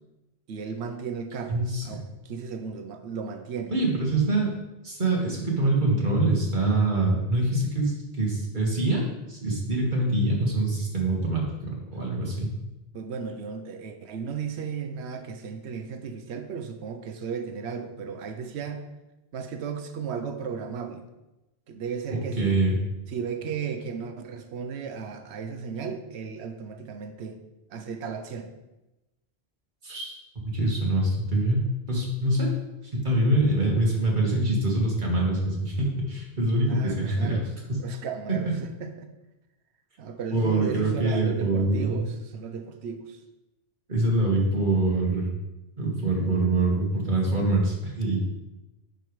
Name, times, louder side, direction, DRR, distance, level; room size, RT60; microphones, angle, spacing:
voice 1, 0.5-3.7 12.9-18.8 19.3-21.0 21.7-22.6 23.1-27.4 27.7-28.5 36.7-39.1 40.0-43.2, right 6 dB, 90° right, 7 dB, 0.9 m, -35 dB
voice 2, 1.5-1.8 3.7-4.5 4.8-12.5 22.4-22.8 29.8-30.1 30.5-32.5 32.8-37.4 37.7-37.8 38.3-38.4 40.3-42.1 43.9-45.3 45.8-48.2, right 2 dB, 50° right, -2 dB, 1.8 m, -24 dB
10.5 x 5.2 x 3.2 m, 1.0 s
omnidirectional pair, 1.1 m